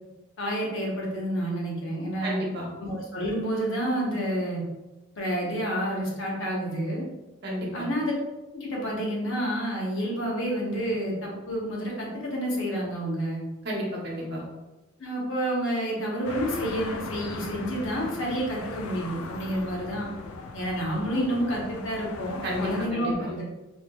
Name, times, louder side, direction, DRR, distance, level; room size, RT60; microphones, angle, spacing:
voice 1, 0.4-2.4 2.8-4.6 5.1-7.0 7.7-8.1 8.5-13.4 15.0-20.1 20.5-23.4, equal, 60° left, -3 dB, 1.0 m, -29 dB
voice 2, 2.2-2.7 7.4-7.8 13.6-14.4 22.4-23.3, equal, 50° right, -3 dB, 1.0 m, -31 dB
sound 1, 16.2-22.9, left 3 dB, 85° left, 0.4 m, -39 dB
4.4 x 2.9 x 2.3 m, 1.1 s
head